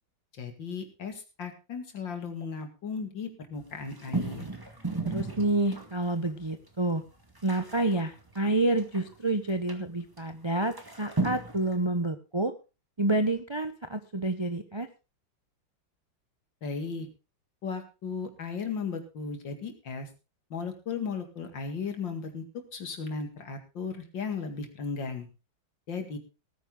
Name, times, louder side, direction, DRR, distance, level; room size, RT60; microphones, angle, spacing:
voice 1, 0.4-4.5 16.6-17.1 17.6-20.1 20.5-22.4 22.7-25.3 25.9-26.2, left 5 dB, 70° left, 6 dB, 2.9 m, -36 dB
sound 1, 3.6-6.1 6.7-6.8 7.0-9.1 9.7-9.8 10.2-10.3 10.6-11.8, right 3 dB, 10° right, 2.1 m, -34 dB
voice 2, 5.0-7.0 7.4-12.5 13.0-14.9, right 2 dB, 35° right, 8 dB, 0.4 m, -28 dB
18.0 x 9.7 x 3.8 m, 0.30 s
omnidirectional pair, 2.1 m